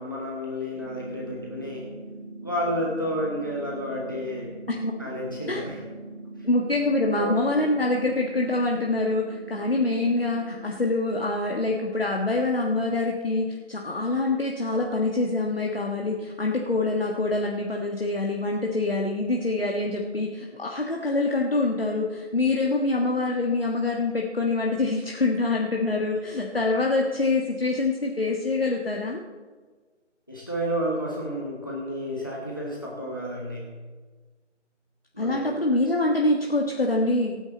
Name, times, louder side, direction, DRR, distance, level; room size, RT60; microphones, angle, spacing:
voice 1, 0.0-1.8 2.4-4.5 5.0-5.8 7.2-7.4 30.3-33.7 35.1-35.6, equal, 15° left, -3 dB, 1.2 m, -31 dB
sound 1, 0.7-10.7, right 2 dB, 30° right, 3.4 m, -41 dB
voice 2, 6.4-29.2 35.2-37.4, left 2 dB, 50° left, 0 dB, 1.5 m, -25 dB
24.0 x 9.7 x 4.1 m, 1.4 s
figure-of-eight pair, 165°, 37 cm